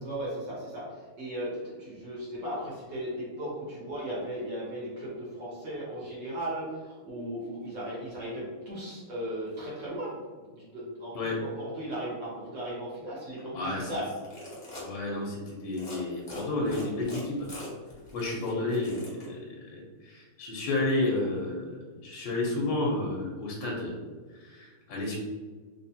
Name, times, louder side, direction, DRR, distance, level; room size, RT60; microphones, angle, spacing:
voice 1, 0.0-14.1, right 1 dB, 60° right, -6 dB, 1.6 m, -37 dB
voice 2, 13.5-13.9 14.8-17.5 18.1-24.0 24.4-25.2, left 2 dB, 70° left, -3 dB, 1.4 m, -31 dB
sound 1, 14.1-14.9 15.7-16.0 16.3-19.3, left 1 dB, 35° left, 0.9 m, -43 dB
3.6 x 3.0 x 2.8 m, 1.4 s
omnidirectional pair, 2.3 m